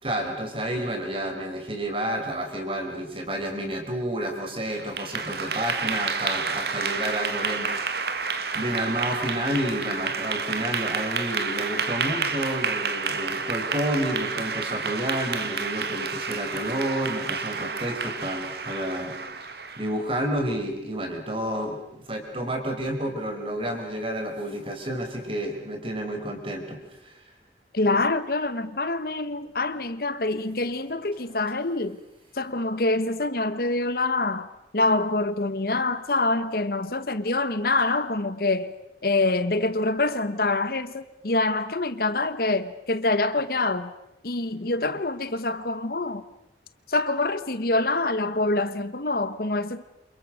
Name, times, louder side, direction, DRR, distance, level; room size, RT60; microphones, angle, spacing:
voice 1, 0.0-8.1 8.5-27.2, right 1 dB, 30° right, 5.4 m, -30 dB
Clapping / Applause, 4.7-20.0, right 5 dB, 60° right, 2.2 m, -30 dB
voice 2, 27.7-32.0 32.3-34.5 34.7-38.7 39.0-43.9 44.2-46.2 46.9-49.8, left 2 dB, 55° left, 1.2 m, -25 dB
29.5 x 27.5 x 6.4 m
head